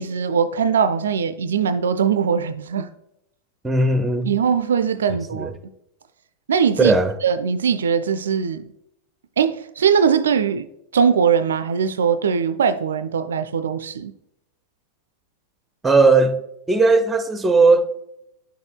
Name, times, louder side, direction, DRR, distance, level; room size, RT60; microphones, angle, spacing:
voice 1, 0.0-2.9 4.3-5.5 6.5-7.0 7.2-8.7 9.4-10.7 10.9-14.1, right 7 dB, 65° right, 0.3 m, -20 dB
voice 2, 3.6-4.3 5.3-5.5 6.8-7.1 15.8-16.4 16.7-17.9, right 3 dB, 10° right, 0.6 m, -17 dB
10.5 x 6.4 x 2.2 m
figure-of-eight pair, 90°, 0 cm